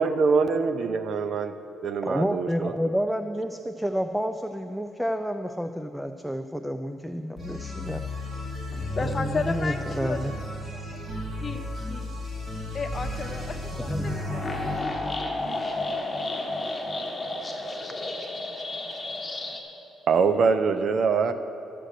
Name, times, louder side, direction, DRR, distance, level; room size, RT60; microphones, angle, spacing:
voice 1, 0.0-1.6 1.8-2.9 20.1-21.3, right 5 dB, 55° right, 11 dB, 0.6 m, -24 dB
voice 2, 2.0-8.0 9.0-10.3 13.7-14.1, equal, ahead, 8 dB, 0.4 m, -30 dB
sound 1, 7.4-14.9, left 1 dB, 35° right, 3.3 m, -34 dB
voice 3, 8.7-10.8 11.4-12.2 12.7-14.7 15.0-15.2, left 4 dB, 35° left, 7 dB, 0.9 m, -34 dB
sound 2, 10.6-10.9 13.8-19.6, left 2 dB, 20° left, 1.5 m, -32 dB
13.0 x 7.7 x 6.6 m, 2.9 s
cardioid pair, 90°, 0 cm